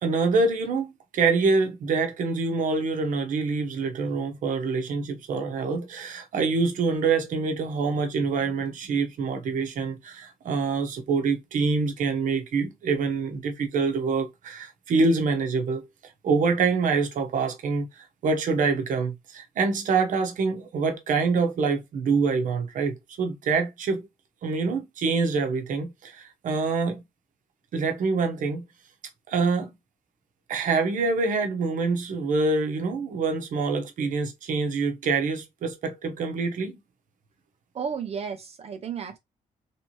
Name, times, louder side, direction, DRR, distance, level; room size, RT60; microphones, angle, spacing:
voice 1, 0.0-15.9 16.2-24.1 24.4-27.0 27.7-28.6 29.3-29.7 30.5-36.8, right 4 dB, 75° right, 0.9 m, -26 dB
voice 2, 37.7-39.2, right 6 dB, 50° right, 0.5 m, -33 dB
3.2 x 3.1 x 2.8 m
cardioid pair, 85°, 14 cm